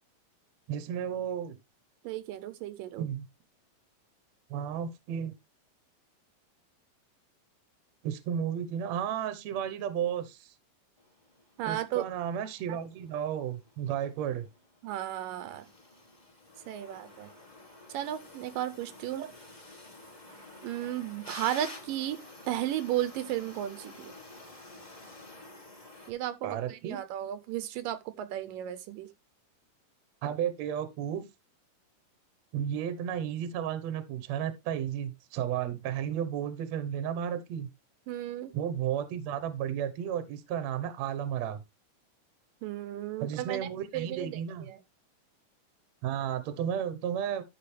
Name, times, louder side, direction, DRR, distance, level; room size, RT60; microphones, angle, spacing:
voice 1, 0.7-1.6 3.0-3.3 4.5-5.3 8.0-10.5 11.7-14.5 19.2-19.3 26.4-27.0 30.2-31.3 32.5-37.7 38.5-41.6 43.2-44.7 46.0-47.4, right 9 dB, 65° right, 2.0 m, -33 dB
voice 2, 2.0-3.1 11.6-12.1 12.7-12.8 14.8-15.7 16.7-17.3 17.9-19.2 20.6-22.2 22.5-24.1 26.1-29.1 38.1-38.5 42.6-44.8, right 12 dB, 80° right, 2.4 m, -34 dB
sound 1, 11.0-26.1, left 2 dB, 10° left, 2.9 m, -50 dB
12.0 x 6.5 x 3.3 m
omnidirectional pair, 3.9 m